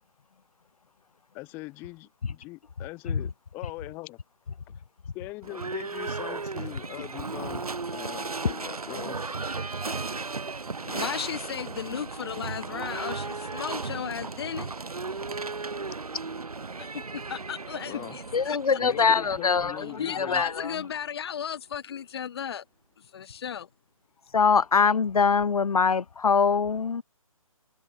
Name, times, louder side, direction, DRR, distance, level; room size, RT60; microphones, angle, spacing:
voice 1, 1.3-4.2 5.1-9.4 17.9-18.2 18.8-20.4, left 23 dB, 10° left, 0.6 m, -41 dB
Livestock farm animals working animals / Bell, 5.4-21.3, right 4 dB, 90° right, 0.9 m, -36 dB
voice 2, 10.9-14.7 16.9-18.8 20.0-22.6 23.0-23.7, left 8 dB, 45° left, 0.8 m, -35 dB
voice 3, 18.3-20.8 24.3-27.0, left 5 dB, 85° left, 0.5 m, -23 dB
figure-of-eight pair, 145°, 18 cm